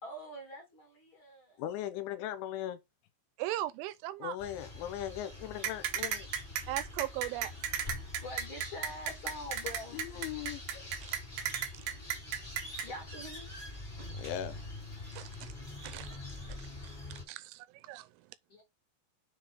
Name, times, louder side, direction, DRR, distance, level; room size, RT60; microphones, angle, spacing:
voice 1, 0.0-1.6 7.6-10.0 11.7-12.1 12.8-13.5 18.5-18.6, left 1 dB, 35° left, 2.2 m, -46 dB
voice 2, 1.6-2.8 4.2-6.3 9.9-10.6 14.2-14.6, left 11 dB, 80° left, 3.0 m, -38 dB
voice 3, 3.4-4.4 6.7-7.5 11.0-11.1 15.1-15.5 15.8-16.1 17.1-18.1, right 15 dB, 85° right, 3.1 m, -38 dB
sound 1, 4.4-17.2, left 2 dB, 15° left, 1.7 m, -45 dB
sound 2, 5.6-12.9, right 8 dB, 70° right, 2.5 m, -34 dB
6.7 x 4.6 x 4.4 m
omnidirectional pair, 5.5 m